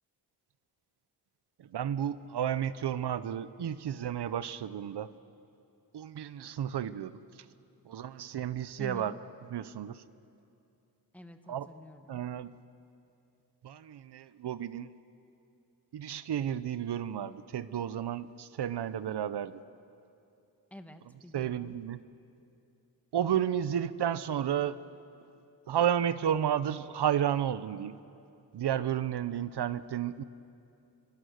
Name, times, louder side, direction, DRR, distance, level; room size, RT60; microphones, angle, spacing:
voice 1, 1.6-5.1 5.9-7.2 7.9-9.1 9.5-10.0 11.5-11.7 12.1-12.5 13.6-14.9 15.9-19.6 21.3-22.0 23.1-24.8 25.7-28.0 28.5-30.2, right 9 dB, 75° right, 15 dB, 0.7 m, -32 dB
voice 2, 8.8-9.2 11.1-12.2 20.7-21.8, left 1 dB, 5° left, 6 dB, 1.2 m, -48 dB
27.5 x 23.5 x 6.5 m, 2.6 s
wide cardioid pair, 170°, 40 cm